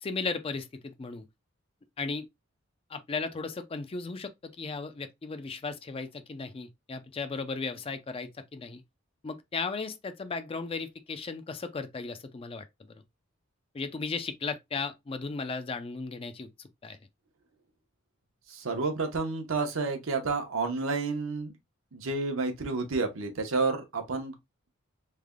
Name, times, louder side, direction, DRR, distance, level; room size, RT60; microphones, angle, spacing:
voice 1, 0.0-1.3 2.0-2.3 2.9-8.8 9.2-13.0 13.7-17.0, left 4 dB, 30° left, 0.4 m, -36 dB
voice 2, 18.5-21.5 21.9-24.3, right 3 dB, 75° right, 0.8 m, -30 dB
3.3 x 2.2 x 3.5 m
head